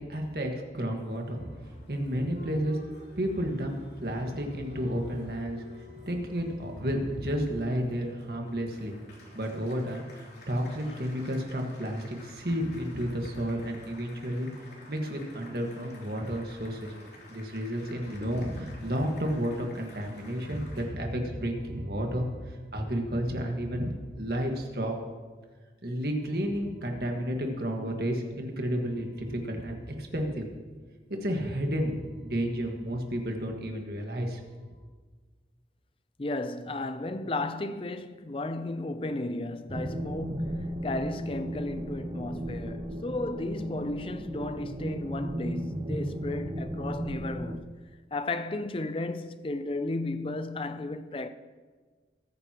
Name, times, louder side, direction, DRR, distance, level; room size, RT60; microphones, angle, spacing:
voice 1, 0.0-1.5 1.9-2.8 3.2-9.0 9.3-14.5 14.9-16.9 17.3-25.0 25.8-30.5 31.1-34.4, equal, 60° right, 1.6 m, -31 dB
Applause, 0.9-20.9, left 2 dB, 70° left, 3.1 m, -52 dB
voice 2, 36.2-47.7 48.1-51.3, left 2 dB, 30° left, 0.5 m, -34 dB
sound 1, 39.7-47.6, right 1 dB, 25° right, 0.6 m, -35 dB
20.5 x 9.5 x 3.0 m
head